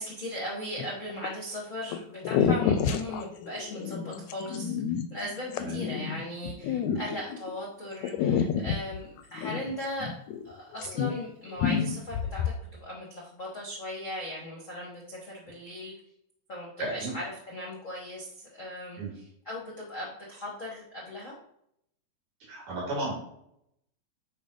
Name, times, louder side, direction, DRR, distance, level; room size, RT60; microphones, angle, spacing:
voice 1, 0.0-4.8 5.1-10.1 10.4-15.9 16.5-21.3, left 1 dB, 55° left, -3 dB, 0.8 m, -38 dB
sound 1, 0.8-1.3 1.9-2.0 2.2-7.5 8.0-10.5 10.7-11.3 11.6-12.6, left 7 dB, 80° left, 1.7 m, -29 dB
voice 2, 16.8-17.1 19.0-19.1 22.5-23.1, right 2 dB, 70° right, -5 dB, 4.5 m, -33 dB
8.7 x 2.9 x 5.1 m, 0.74 s
omnidirectional pair, 3.5 m